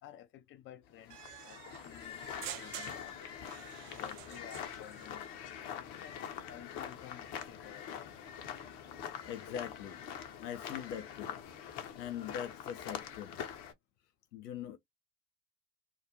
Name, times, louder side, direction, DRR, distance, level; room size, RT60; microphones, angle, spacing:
voice 1, 0.0-3.2 3.8-5.3 5.7-6.2 6.5-8.2, left 11 dB, 30° left, 0.4 m, -53 dB
sound 1, 1.0-13.7, left 8 dB, 50° left, 0.9 m, -44 dB
sound 2, 1.1-5.1, right 13 dB, 55° right, 0.6 m, -48 dB
voice 2, 9.2-10.0 10.4-11.4 11.7-13.4 14.3-14.8, left 9 dB, 75° left, 0.6 m, -42 dB
2.4 x 2.3 x 2.8 m
figure-of-eight pair, 65°, 49 cm